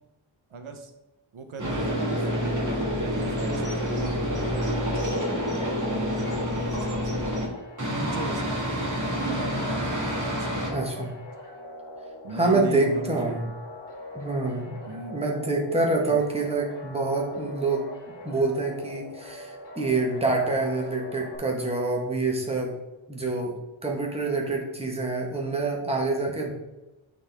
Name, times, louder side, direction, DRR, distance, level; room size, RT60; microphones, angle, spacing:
voice 1, 0.5-0.9 1.3-2.7 3.0-5.3 5.8-7.3 7.8-8.8 9.1-9.9 10.3-10.7 12.2-13.5 14.9-15.2 16.0-16.3, right 3 dB, 80° right, 6 dB, 0.9 m, -38 dB
sound 1, 1.6-7.5 7.8-10.7, equal, 40° right, 1.9 m, -28 dB
sound 2, 7.5-21.4, left 1 dB, 55° left, 1.3 m, -42 dB
voice 2, 10.7-11.1 12.4-13.4 14.1-14.7 15.1-17.9 18.2-22.7 23.1-23.6 23.8-26.5, right 3 dB, 10° right, 0 dB, 1.3 m, -26 dB
8.4 x 4.1 x 3.4 m, 1.0 s
wide cardioid pair, 95°, 48 cm